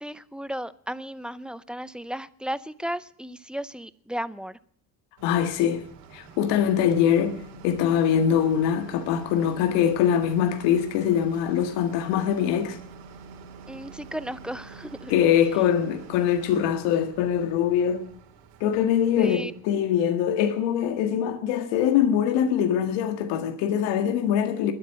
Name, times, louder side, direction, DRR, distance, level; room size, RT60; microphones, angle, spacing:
voice 1, 0.0-4.6 13.7-15.1 19.2-19.5, equal, ahead, 0.6 m, -34 dB
voice 2, 5.2-5.8 6.1-7.4 7.6-12.8 15.1-18.1 18.6-24.7, left 9 dB, 80° left, 1.8 m, -23 dB
sound 1, 5.2-19.8, right 4 dB, 85° right, 4.0 m, -46 dB
21.5 x 8.7 x 7.5 m
cardioid pair, 130°, 42 cm